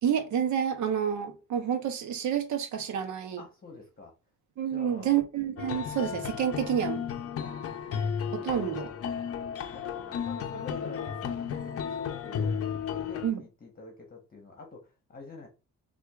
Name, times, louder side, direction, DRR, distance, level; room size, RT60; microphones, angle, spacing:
voice 1, 0.0-3.4 4.6-7.0 8.3-8.9 13.2-13.4, right 9 dB, 70° right, 0.8 m, -29 dB
voice 2, 3.4-4.1 4.7-5.2 7.4-8.1 8.5-15.5, left 3 dB, 30° left, 1.1 m, -48 dB
sound 1, 5.6-13.3, left 7 dB, 50° left, 0.6 m, -34 dB
4.3 x 2.5 x 2.3 m
cardioid pair, 90°, 30 cm